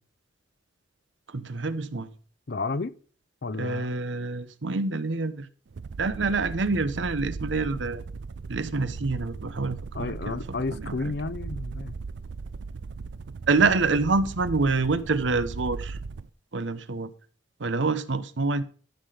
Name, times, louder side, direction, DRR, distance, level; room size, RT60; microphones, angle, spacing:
voice 1, 1.3-2.1 3.6-5.5 6.0-8.0 8.5-10.4 10.7-11.1 13.5-16.0 16.5-17.1 17.6-18.6, right 3 dB, 90° right, 0.9 m, -26 dB
voice 2, 2.5-2.9 3.4-4.0 9.9-11.9, left 3 dB, 60° left, 0.6 m, -32 dB
sound 1, 5.7-16.3, right 4 dB, 70° right, 0.4 m, -38 dB
14.0 x 5.8 x 5.0 m
head